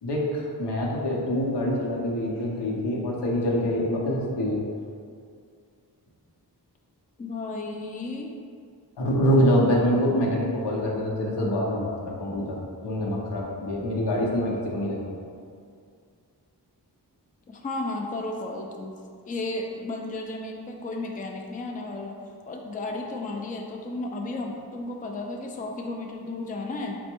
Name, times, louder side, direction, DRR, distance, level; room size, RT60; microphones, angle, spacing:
voice 1, 0.0-4.6 9.0-12.6 12.8-15.0, equal, 85° left, -3 dB, 0.8 m, -25 dB
voice 2, 7.2-8.3 17.5-18.9 19.3-22.2 22.5-27.0, left 2 dB, 20° left, 1 dB, 0.3 m, -33 dB
4.3 x 2.1 x 4.4 m, 2.3 s
wide cardioid pair, 70°, 41 cm